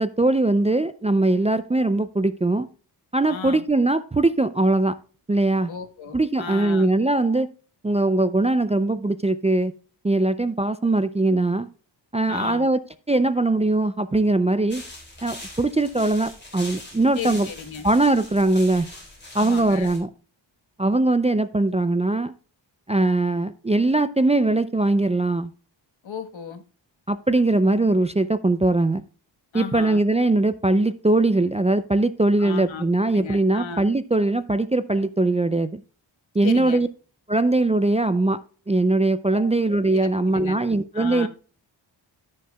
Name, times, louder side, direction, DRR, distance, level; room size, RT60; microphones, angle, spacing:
voice 1, 0.0-2.7 3.1-5.0 5.3-5.7 6.1-7.5 7.8-9.7 10.0-11.7 12.1-12.8 13.1-14.8 15.2-17.5 17.8-18.9 19.3-20.1 20.8-22.3 22.9-25.5 27.1-29.0 29.5-35.8 36.4-36.9 37.3-38.4 38.7-41.3, right 2 dB, 15° right, 0.3 m, -21 dB
voice 2, 3.3-3.6 5.7-6.9 12.3-12.7 17.2-17.9 19.3-20.0 26.0-26.6 29.5-30.0 32.4-33.8 36.4-36.8 39.3-39.5 39.9-40.6 40.9-41.3, left 6 dB, 80° left, 1.3 m, -35 dB
sound 1, 14.7-20.0, left 2 dB, 25° left, 3.9 m, -41 dB
14.5 x 6.5 x 2.2 m
wide cardioid pair, 125°, 46 cm